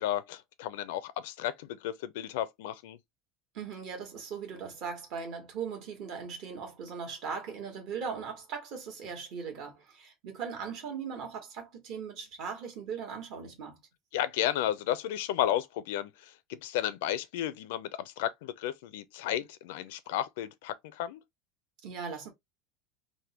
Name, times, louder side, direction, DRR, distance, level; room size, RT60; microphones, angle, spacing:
voice 1, 0.0-3.0 14.1-21.2, left 12 dB, 85° left, 0.4 m, -33 dB
voice 2, 3.5-13.8 21.8-22.3, right 6 dB, 50° right, 1.3 m, -39 dB
3.4 x 2.2 x 2.8 m
cardioid pair, 160°, 0 cm